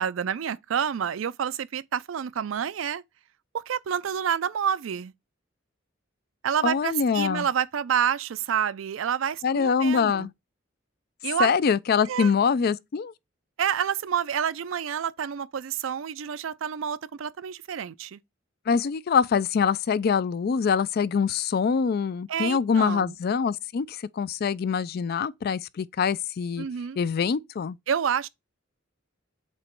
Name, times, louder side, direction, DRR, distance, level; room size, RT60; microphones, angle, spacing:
voice 1, 0.0-3.0 3.5-5.1 6.4-10.3 11.2-11.5 12.0-12.3 13.6-18.2 22.3-23.1 26.6-27.0 27.9-28.3, right 8 dB, 85° right, 0.4 m, -28 dB
voice 2, 6.6-7.5 9.4-10.3 11.4-13.1 18.7-26.7 27.0-27.8, left 6 dB, 50° left, 0.3 m, -24 dB
7.6 x 3.0 x 4.4 m
head